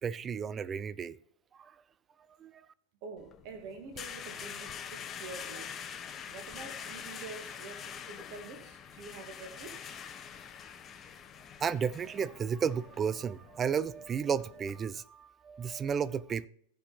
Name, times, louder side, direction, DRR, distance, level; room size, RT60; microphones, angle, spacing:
voice 1, 0.0-1.2 1.5-1.7 2.4-2.7 11.6-16.5, right 7 dB, 20° right, 0.4 m, -33 dB
voice 2, 3.0-5.8 6.3-10.0, right 4 dB, 45° right, 1.9 m, -47 dB
sound 1, 3.2-14.8, left 8 dB, 25° left, 0.9 m, -45 dB
15.5 x 5.6 x 4.2 m
figure-of-eight pair, 90°, 0 cm